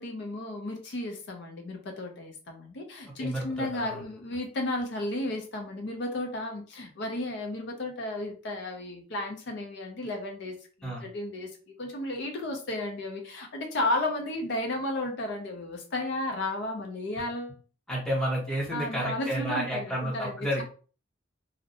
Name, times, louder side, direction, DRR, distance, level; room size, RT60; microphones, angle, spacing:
voice 1, 0.0-17.6 18.7-20.6, left 1 dB, 60° left, 0.5 m, -33 dB
voice 2, 3.1-4.0 10.8-11.0 17.9-20.6, equal, 5° left, 0.8 m, -31 dB
2.5 x 2.0 x 2.7 m
head